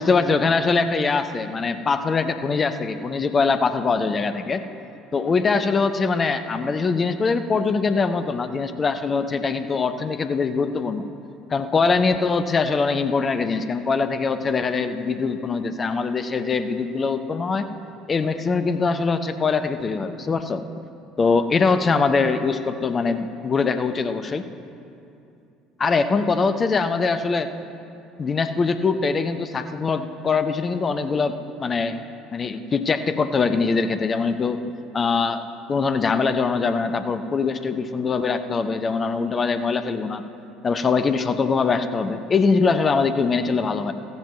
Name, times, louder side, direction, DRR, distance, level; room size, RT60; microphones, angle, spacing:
voice 1, 0.0-4.7 5.1-11.1 11.5-17.7 18.1-20.6 21.2-24.4 25.8-27.5 28.2-32.0 32.3-34.6 34.9-35.4 35.7-40.2 40.6-43.9, left 4 dB, 30° left, 10 dB, 0.6 m, -22 dB
15.0 x 15.0 x 3.1 m, 2.6 s
figure-of-eight pair, 60°, 0 cm